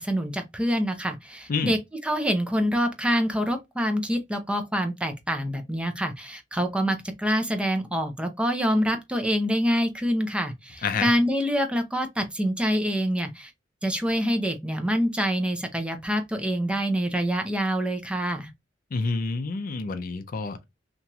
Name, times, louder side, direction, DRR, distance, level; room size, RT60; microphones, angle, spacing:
voice 1, 0.0-13.5 13.8-18.5, equal, 5° right, 0.5 m, -26 dB
voice 2, 18.9-20.6, left 4 dB, 50° left, 0.4 m, -28 dB
2.9 x 2.8 x 2.3 m
head